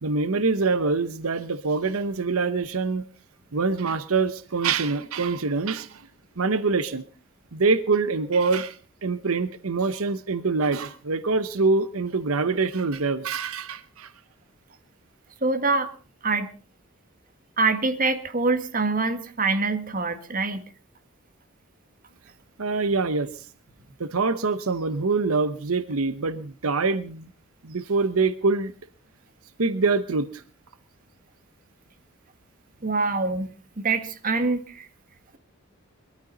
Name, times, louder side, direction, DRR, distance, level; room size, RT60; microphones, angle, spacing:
voice 1, 0.0-3.1 3.5-6.1 6.4-7.0 7.5-14.1 22.6-23.5 24.0-27.3 27.6-28.7 29.6-30.4, right 4 dB, 85° right, 12 dB, 0.9 m, -25 dB
voice 2, 15.4-15.9 16.2-16.5 17.6-20.6 32.8-33.5 33.8-34.9, right 3 dB, 40° right, 7 dB, 1.7 m, -24 dB
22.0 x 13.5 x 4.0 m, 0.38 s
head